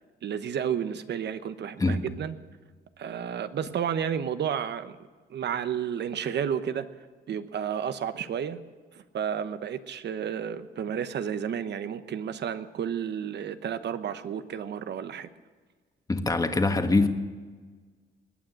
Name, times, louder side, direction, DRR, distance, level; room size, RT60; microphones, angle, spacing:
voice 1, 0.2-2.3 3.0-5.0 5.3-6.9 7.3-8.6 8.9-15.3 17.0-17.1, right 8 dB, 60° right, 11 dB, 1.0 m, -31 dB
voice 2, 16.1-17.1, left 3 dB, 20° left, 6 dB, 1.6 m, -23 dB
21.0 x 9.0 x 7.7 m, 1.5 s
cardioid pair, 90°, 20 cm